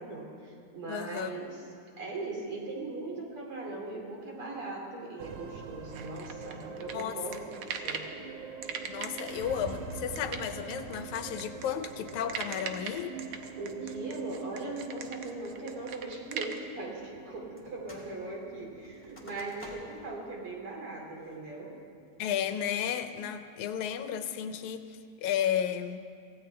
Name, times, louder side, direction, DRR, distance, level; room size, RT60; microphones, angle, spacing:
voice 1, 0.0-1.7 2.0-8.1 13.6-21.8, right 2 dB, 50° right, -2 dB, 3.6 m, -39 dB
voice 2, 0.9-1.3 6.9-7.2 8.9-13.1 22.2-26.1, left 9 dB, 80° left, 9 dB, 2.1 m, -33 dB
sound 1, 5.2-23.7, right 5 dB, 85° right, 2.4 m, -45 dB
sound 2, 5.9-8.1 8.6-16.6, right 7 dB, 70° right, 1.3 m, -40 dB
sound 3, 17.6-18.1 18.4-20.1 20.6-20.7 21.2-21.6 22.1-22.5, left 1 dB, 5° left, 2.2 m, -51 dB
24.5 x 16.5 x 3.4 m, 2.5 s
omnidirectional pair, 3.4 m